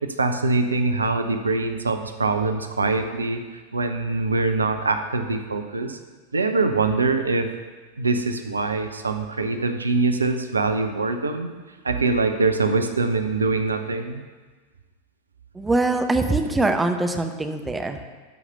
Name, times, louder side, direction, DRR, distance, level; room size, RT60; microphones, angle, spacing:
voice 1, 0.0-6.0 6.3-7.5 8.0-11.5 11.8-14.2, right 3 dB, 75° right, 7 dB, 0.7 m, -23 dB
voice 2, 15.5-18.0, right 2 dB, 10° right, 6 dB, 0.8 m, -23 dB
12.0 x 4.9 x 6.6 m, 1.4 s
figure-of-eight pair, 90°, 0 cm